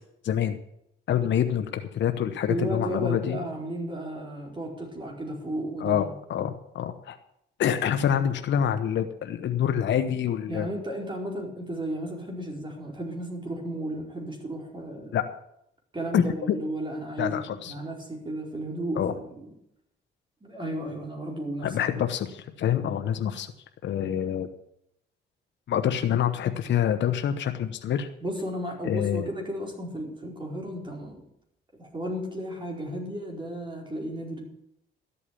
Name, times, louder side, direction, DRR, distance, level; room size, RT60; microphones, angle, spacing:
voice 1, 0.2-0.6 1.1-3.4 5.8-7.2 7.6-10.7 15.1-15.2 16.1-16.5 17.2-17.7 19.0-19.1 21.6-23.5 23.8-24.5 25.7-28.1 28.8-29.3, left 9 dB, 65° left, 7 dB, 1.1 m, -26 dB
voice 2, 2.5-6.4 10.5-15.2 15.9-17.4 17.6-19.5 20.4-21.7 28.2-31.2 31.8-34.5, right 1 dB, 25° right, 0 dB, 4.7 m, -34 dB
13.0 x 8.4 x 8.4 m, 0.76 s
cardioid pair, 90°, 20 cm